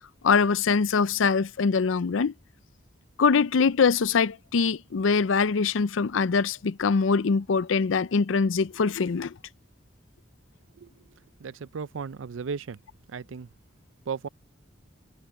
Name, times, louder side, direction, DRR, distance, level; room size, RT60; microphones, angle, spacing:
voice 1, 0.2-2.3 3.2-9.3, left 5 dB, 85° left, 0.5 m, -23 dB
voice 2, 11.4-12.8 13.1-13.5 14.1-14.3, right 5 dB, 90° right, 0.5 m, -35 dB
head